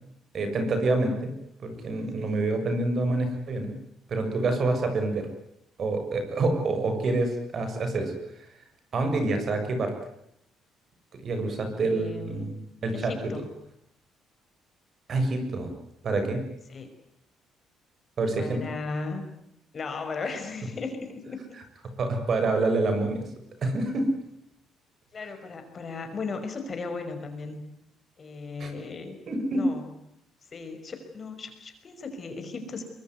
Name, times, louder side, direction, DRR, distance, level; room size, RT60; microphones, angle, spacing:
voice 1, 0.3-1.3 1.6-3.7 4.1-5.3 5.8-8.1 8.9-9.9 11.1-13.1 15.1-15.7 16.0-16.4 18.2-18.6 22.0-23.3 23.6-24.1 28.6-28.7 29.3-29.6, right 2 dB, 45° right, 7 dB, 6.7 m, -27 dB
voice 2, 11.6-12.5 12.9-13.5 16.7-16.9 18.4-19.3 19.7-21.4 25.1-27.5 28.2-29.2 29.5-29.8 30.5-32.8, left 4 dB, 35° left, 7 dB, 5.6 m, -36 dB
23.5 x 23.0 x 9.5 m, 0.75 s
cardioid pair, 115°, 0 cm